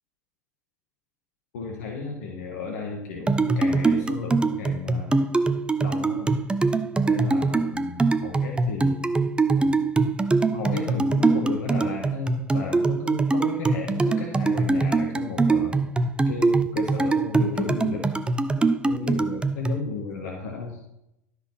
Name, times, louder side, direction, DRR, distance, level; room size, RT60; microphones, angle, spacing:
voice 1, 1.5-5.1 5.8-6.4 7.0-9.1 9.6-9.8 10.5-15.8 16.3-18.1 18.8-20.8, left 4 dB, 65° left, 0 dB, 1.8 m, -34 dB
sound 1, 3.3-19.8, right 3 dB, 10° right, 0.6 m, -23 dB
12.5 x 5.8 x 5.9 m, 0.83 s
figure-of-eight pair, 80°, 9 cm